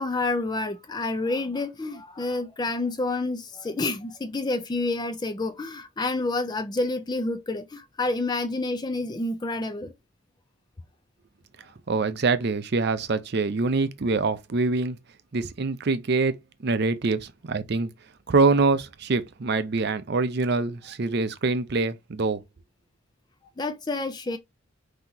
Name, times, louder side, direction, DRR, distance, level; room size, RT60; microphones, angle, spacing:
voice 1, 0.0-9.9 23.6-24.4, left 2 dB, 20° left, 0.3 m, -29 dB
voice 2, 11.9-15.0 15.3-16.4 16.6-17.9 18.3-22.4, right 3 dB, 50° right, 0.5 m, -24 dB
5.7 x 2.8 x 2.7 m
head